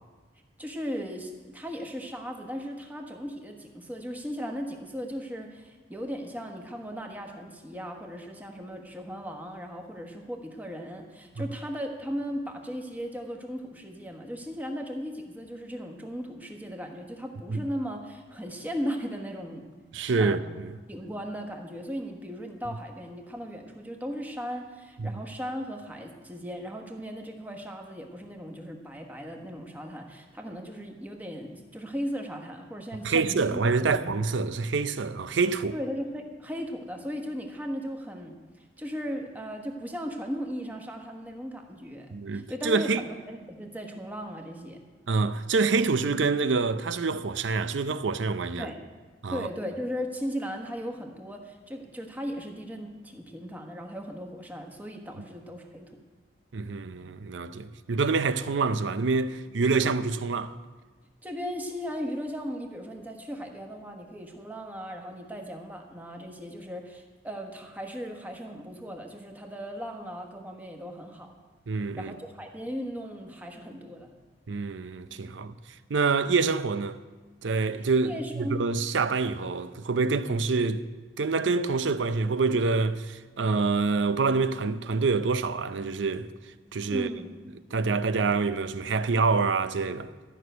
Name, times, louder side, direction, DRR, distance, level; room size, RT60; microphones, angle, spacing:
voice 1, 0.6-19.7 20.2-20.4 20.9-33.6 33.9-34.1 35.7-44.8 48.6-48.8 49.3-56.0 61.2-71.3 72.0-74.1 78.0-78.7 86.9-87.3, equal, 10° right, 1.3 m, -37 dB
voice 2, 19.9-20.8 25.0-25.1 33.0-35.8 42.1-43.0 45.1-48.7 49.2-49.5 56.5-60.6 71.7-72.1 74.5-75.6 75.9-77.0 77.4-80.8 81.2-86.3 86.7-87.1 87.7-90.1, right 4 dB, 80° right, 0.6 m, -26 dB
13.5 x 6.3 x 9.2 m
head